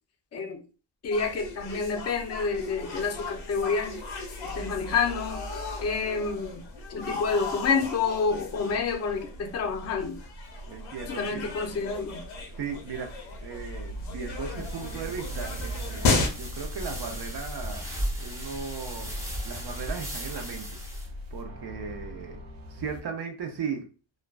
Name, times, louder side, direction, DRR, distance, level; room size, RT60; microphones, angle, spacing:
voice 1, 0.3-0.6 1.0-4.0 4.6-5.4 5.8-6.6 6.9-10.2 11.1-12.2, left 5 dB, 35° left, 0.5 m, -28 dB
sound 1, 1.1-16.3, left 2 dB, 85° left, 0.8 m, -35 dB
voice 2, 10.7-11.5 12.6-19.1 19.4-20.8 21.3-22.4 22.7-23.9, right 6 dB, 55° right, 0.6 m, -37 dB
sound 2, 13.8-23.0, left 2 dB, 90° right, 0.8 m, -41 dB
sound 3, 14.5-21.1, equal, 5° right, 0.7 m, -37 dB
2.4 x 2.2 x 2.3 m
cardioid pair, 95°, 47 cm